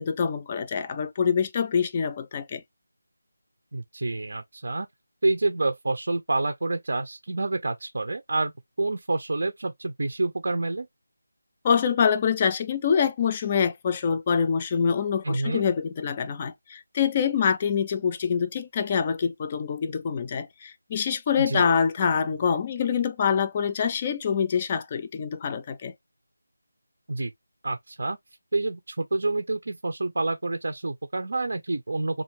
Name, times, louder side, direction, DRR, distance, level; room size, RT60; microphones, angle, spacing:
voice 1, 0.0-2.6 11.6-25.9, left 6 dB, 25° left, 0.4 m, -25 dB
voice 2, 3.7-4.9 5.2-8.5 8.8-10.9 15.2-15.6 21.4-21.7 27.1-27.3 27.6-28.2 28.5-32.2, right 2 dB, 60° right, 0.5 m, -28 dB
3.2 x 2.5 x 3.0 m
figure-of-eight pair, 160°, 0 cm